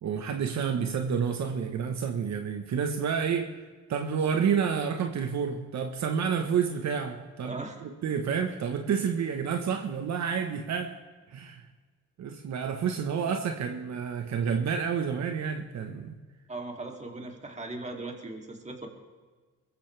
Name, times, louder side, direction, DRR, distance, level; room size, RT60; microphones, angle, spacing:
voice 1, 0.0-3.5 3.9-11.0 11.3-11.7 12.2-16.2, right 7 dB, 65° right, 5 dB, 1.3 m, -29 dB
voice 2, 7.4-7.8 16.5-18.9, right 2 dB, 25° right, 2 dB, 2.9 m, -38 dB
22.0 x 14.5 x 3.5 m, 1.4 s
cardioid pair, 90°, 30 cm